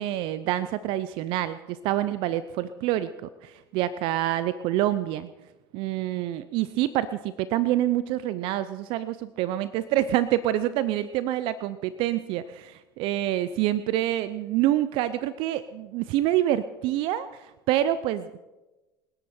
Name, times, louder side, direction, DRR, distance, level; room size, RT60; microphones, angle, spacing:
voice 1, 0.0-5.3 5.7-18.4, right 13 dB, 65° right, 15 dB, 0.7 m, -27 dB
28.0 x 10.5 x 4.4 m, 1.1 s
hypercardioid pair, 75°, 10 cm